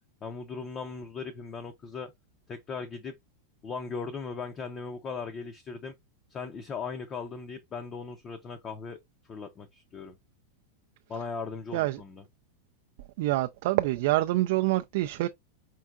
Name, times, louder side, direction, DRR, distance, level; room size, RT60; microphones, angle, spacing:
voice 1, 0.2-2.1 2.5-3.1 3.6-5.9 6.3-9.0 9.3-10.2 11.1-12.2, left 5 dB, 20° left, 0.5 m, -38 dB
voice 2, 13.2-15.3, right 17 dB, 55° right, 0.3 m, -26 dB
4.5 x 3.5 x 2.4 m
supercardioid pair, 155°, 0 cm